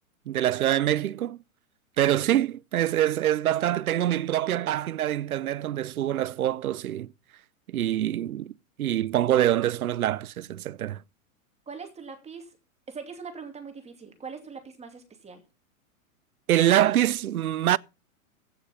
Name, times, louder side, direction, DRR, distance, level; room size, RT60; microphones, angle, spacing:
voice 1, 0.3-1.4 2.0-7.1 7.7-11.0 16.5-17.8, right 12 dB, 90° right, 0.6 m, -25 dB
voice 2, 11.7-12.5 12.9-15.4, right 5 dB, 15° right, 2.4 m, -42 dB
15.5 x 6.2 x 5.5 m
hypercardioid pair, 115°, 42 cm